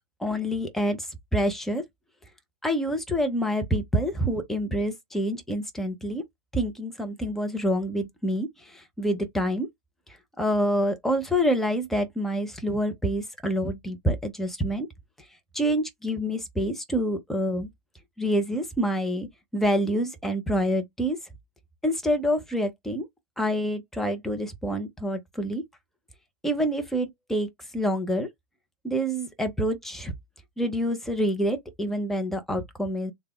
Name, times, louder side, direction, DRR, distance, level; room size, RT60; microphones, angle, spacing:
voice 1, 0.2-1.1 1.3-1.8 2.6-6.2 6.5-8.5 8.7-9.7 10.4-14.9 15.5-17.7 18.2-19.3 19.5-21.2 21.8-23.1 23.4-25.6 26.4-27.5 27.7-28.3 28.8-30.1 30.6-33.1, equal, ahead, 0.6 m, -27 dB
3.3 x 2.2 x 3.3 m
figure-of-eight pair, 115°, 20 cm